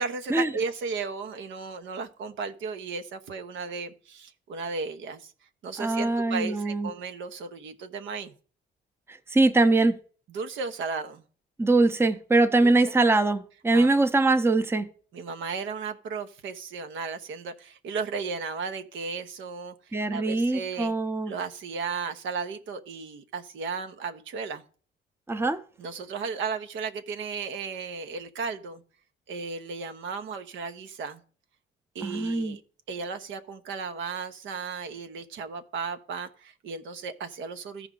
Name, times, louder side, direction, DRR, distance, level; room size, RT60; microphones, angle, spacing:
voice 1, 0.0-5.3 5.6-8.3 10.3-11.2 12.6-12.7 13.7-13.9 15.1-19.7 20.1-20.9 21.3-24.6 25.8-28.8 29.3-31.2 31.9-32.6 32.9-37.9, right 5 dB, 75° right, 0.9 m, -35 dB
voice 2, 5.8-6.9 9.3-9.9 11.6-14.9 19.9-21.3 25.3-25.6 32.0-32.6, right 2 dB, 10° right, 0.7 m, -22 dB
14.0 x 4.8 x 3.8 m
cardioid pair, 90°, 20 cm